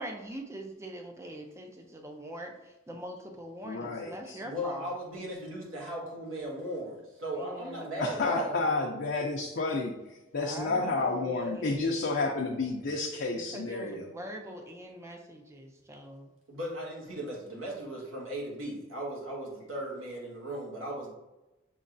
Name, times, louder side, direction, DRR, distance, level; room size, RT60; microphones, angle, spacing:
voice 1, 0.0-4.9 7.3-8.3 10.4-11.9 13.5-16.3, right 1 dB, 15° right, 3 dB, 0.5 m, -42 dB
voice 2, 3.6-4.4 8.0-9.9 10.3-14.1, left 3 dB, 60° left, -1 dB, 0.5 m, -30 dB
voice 3, 4.4-8.6 16.5-21.1, right 1 dB, 80° right, -4 dB, 1.6 m, -37 dB
6.5 x 3.1 x 2.6 m, 1.0 s
head